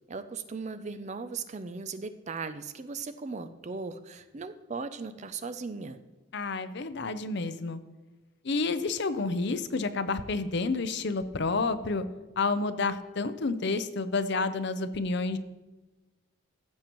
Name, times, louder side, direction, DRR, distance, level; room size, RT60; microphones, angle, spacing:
voice 1, 0.1-6.0, right 4 dB, 35° right, 11 dB, 0.4 m, -38 dB
voice 2, 6.3-7.8 8.4-12.0 12.4-15.4, left 3 dB, 55° left, 11 dB, 0.5 m, -29 dB
15.0 x 7.4 x 3.0 m, 1.2 s
head